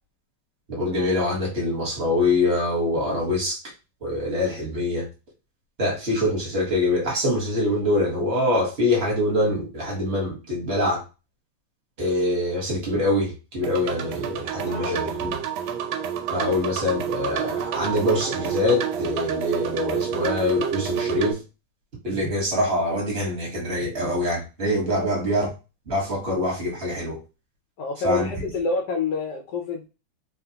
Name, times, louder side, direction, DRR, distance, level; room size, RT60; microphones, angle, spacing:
voice 1, 0.7-3.6 4.0-5.1 5.8-11.0 12.0-15.3 16.3-21.4 22.0-25.5 25.9-27.2 28.0-28.3, left 1 dB, 35° right, -3 dB, 1.2 m, -24 dB
sound 1, 13.6-21.3, right 8 dB, 75° right, 1.3 m, -29 dB
voice 2, 14.6-15.2 25.0-25.1 27.8-29.9, left 4 dB, 70° left, 1 dB, 1.0 m, -28 dB
3.6 x 2.4 x 2.8 m, 0.30 s
omnidirectional pair, 2.4 m